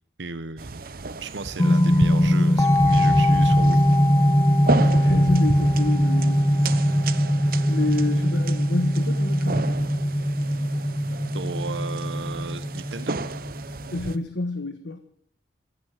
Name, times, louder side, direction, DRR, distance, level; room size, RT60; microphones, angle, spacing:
voice 1, 0.2-0.8 1.2-3.8 11.3-13.2, right 3 dB, 85° right, 12 dB, 1.0 m, -35 dB
sound 1, 0.6-14.2, right 3 dB, 55° right, 0.9 m, -33 dB
sound 2, 1.6-14.2, equal, 15° left, 0.7 m, -21 dB
voice 2, 4.8-6.7 7.7-9.8 13.9-15.0, left 2 dB, 85° left, 9 dB, 1.3 m, -29 dB
15.5 x 11.0 x 7.4 m, 0.66 s
head